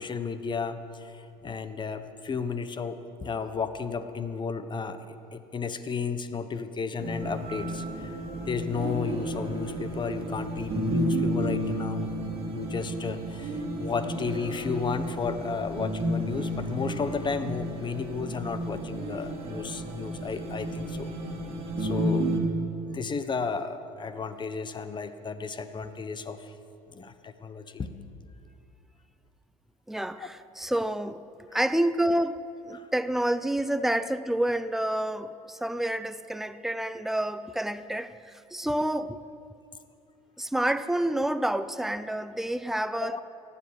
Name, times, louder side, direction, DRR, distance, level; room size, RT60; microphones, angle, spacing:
voice 1, 0.0-8.2 8.5-12.1 12.5-21.1 21.8-22.4 22.9-26.5 26.9-27.9 30.2-30.3 32.7-32.9 33.7-33.8 43.0-43.2, left 5 dB, 30° left, 1.1 m, -33 dB
sound 1, 7.0-22.4, right 1 dB, 35° right, 2.8 m, -32 dB
voice 2, 29.9-31.2 31.5-39.2 40.4-43.2, right 1 dB, ahead, 0.6 m, -28 dB
15.0 x 10.0 x 8.1 m
supercardioid pair, 85°, 16 cm